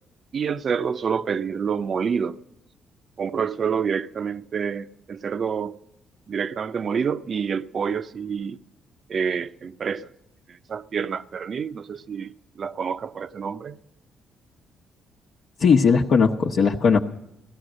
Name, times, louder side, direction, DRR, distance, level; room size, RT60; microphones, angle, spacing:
voice 1, 0.3-2.4 3.2-5.8 6.3-8.6 9.1-10.1 10.7-13.8, right 6 dB, 50° right, 0.6 m, -27 dB
voice 2, 15.6-17.0, left 5 dB, 60° left, 1.0 m, -18 dB
17.0 x 13.0 x 6.3 m
cardioid pair, 90°, 0 cm